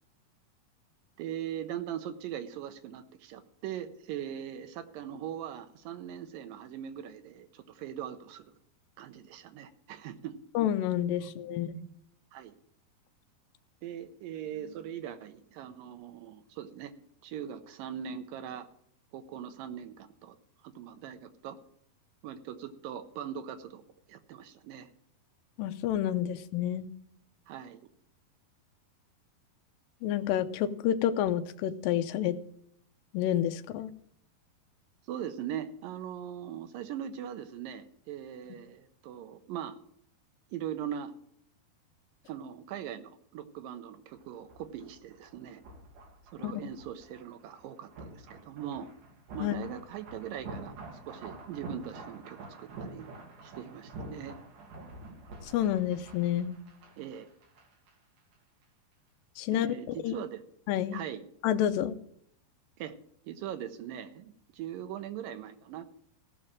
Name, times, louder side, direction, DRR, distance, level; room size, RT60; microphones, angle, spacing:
voice 1, 1.2-8.5 9.0-10.4 11.2-11.9 12.3-12.6 13.8-16.9 17.2-18.7 19.1-20.4 20.6-21.6 22.2-23.8 24.1-24.9 27.5-27.8 35.1-39.8 40.5-41.1 42.3-45.6 46.3-48.9 49.3-50.7 51.0-53.1 53.4-54.4 57.0-57.3 59.5-60.4 60.9-61.2 62.8-63.0 63.2-65.8, right 9 dB, 80° right, 9 dB, 2.2 m, -40 dB
voice 2, 10.6-11.7 25.6-26.9 30.0-32.4 33.1-33.9 46.4-46.5 49.4-49.5 55.4-56.6 59.4-60.2 60.7-61.0 61.4-62.0, left 11 dB, 80° left, 9 dB, 2.1 m, -29 dB
sound 1, 44.1-57.9 58.2-58.3, right 2 dB, 60° right, 3.4 m, -47 dB
16.0 x 5.6 x 7.5 m, 0.69 s
omnidirectional pair, 4.5 m